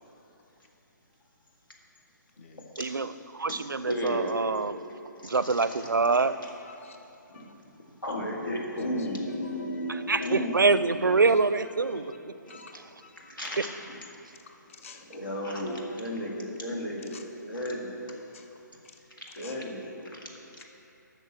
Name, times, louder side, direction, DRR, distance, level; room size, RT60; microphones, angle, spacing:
voice 1, 2.8-4.8 5.2-6.4 9.9-12.3 12.7-12.8, right 4 dB, 85° right, 14 dB, 0.4 m, -25 dB
voice 2, 3.5-4.3 5.2-5.6 7.3-7.4 8.0-11.3 13.4-13.7 14.9-17.9 19.2-20.2, left 1 dB, 85° left, -1 dB, 2.0 m, -34 dB
voice 3, 5.4-5.9 6.4-7.0 7.3-7.5 8.8-8.9 9.4-9.8 11.2-11.3 12.5-13.3 14.5-15.1 17.1-17.2 18.3-18.5 19.4-19.6, left 4 dB, 45° left, 5 dB, 0.9 m, -50 dB
9.0 x 6.1 x 7.2 m, 2.8 s
figure-of-eight pair, 140°, 10 cm